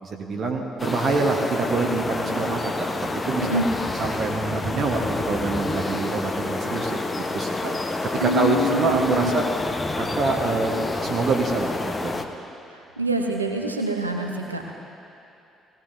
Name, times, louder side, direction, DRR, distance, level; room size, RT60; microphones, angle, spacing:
voice 1, 0.0-3.6 4.0-7.7 8.1-9.4 10.0-12.2, right 3 dB, 45° right, 1 dB, 1.2 m, -26 dB
sound 1, 0.8-12.3, left 2 dB, 20° left, 0.9 m, -28 dB
voice 2, 8.2-9.3 13.0-14.7, right 1 dB, 85° right, 2 dB, 0.8 m, -25 dB
19.0 x 16.0 x 2.7 m, 2.7 s
figure-of-eight pair, 45°, 0 cm